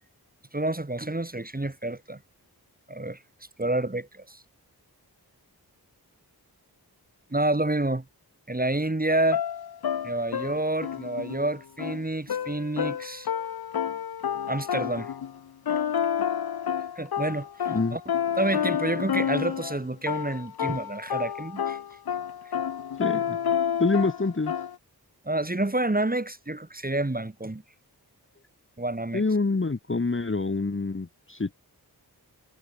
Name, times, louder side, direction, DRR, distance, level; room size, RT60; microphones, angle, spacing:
voice 1, 0.5-2.2 2.9-3.2 3.6-4.4 7.3-8.0 8.5-9.4 10.0-13.3 14.5-15.1 17.0-18.0 18.4-21.8 25.2-27.6 28.8-29.2, right 2 dB, 20° right, 1.6 m, -28 dB
sound 1, 9.1-15.4 15.7-19.8 20.1-24.7, left 8 dB, 70° left, 0.6 m, -30 dB
voice 2, 23.0-23.4 23.8-24.5 29.1-31.5, left 3 dB, 30° left, 1.0 m, -26 dB
wide cardioid pair, 45°, 39 cm